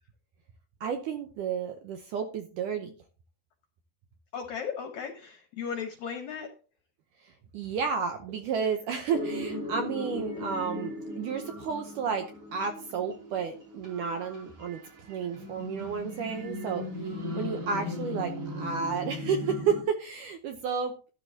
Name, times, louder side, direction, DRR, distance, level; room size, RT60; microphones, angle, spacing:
voice 1, 0.8-2.9 7.5-12.3 12.5-14.8 15.1-16.9 17.3-20.9, right 6 dB, 80° right, 6 dB, 1.8 m, -31 dB
voice 2, 4.3-6.5 17.3-17.5, left 7 dB, 70° left, 5 dB, 1.8 m, -36 dB
sound 1, 9.1-19.8, left 1 dB, 35° right, 3.5 m, -38 dB
13.0 x 11.5 x 2.8 m, 0.37 s
omnidirectional pair, 4.8 m